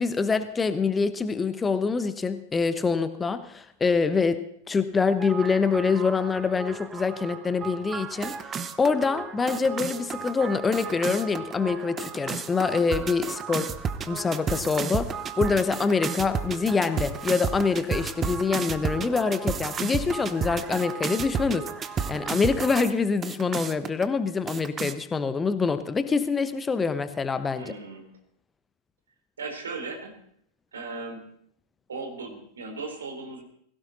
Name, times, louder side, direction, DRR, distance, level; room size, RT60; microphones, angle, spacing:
voice 1, 0.0-13.7 14.1-21.7 22.1-27.7, left 4 dB, 15° left, 12 dB, 1.0 m, -25 dB
sound 1, 5.2-22.9 23.2-24.0 24.5-24.9, right 6 dB, 25° right, 1.0 m, -33 dB
voice 2, 27.6-28.0 29.4-30.1 30.7-31.2 31.9-33.4, right 3 dB, 70° right, 4 dB, 4.0 m, -37 dB
21.0 x 16.5 x 4.1 m, 0.69 s
figure-of-eight pair, 90°, 0 cm